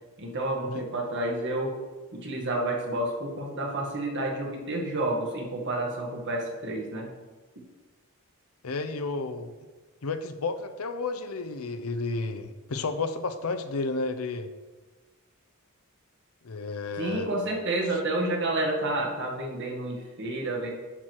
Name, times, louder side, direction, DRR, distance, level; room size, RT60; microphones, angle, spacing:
voice 1, 0.2-1.8 2.1-7.1 17.0-20.7, right 1 dB, 55° right, 0 dB, 1.6 m, -30 dB
voice 2, 8.6-9.5 10.0-14.5 16.4-17.3, left 3 dB, 75° left, 9 dB, 0.7 m, -32 dB
10.0 x 4.6 x 4.6 m, 1.3 s
head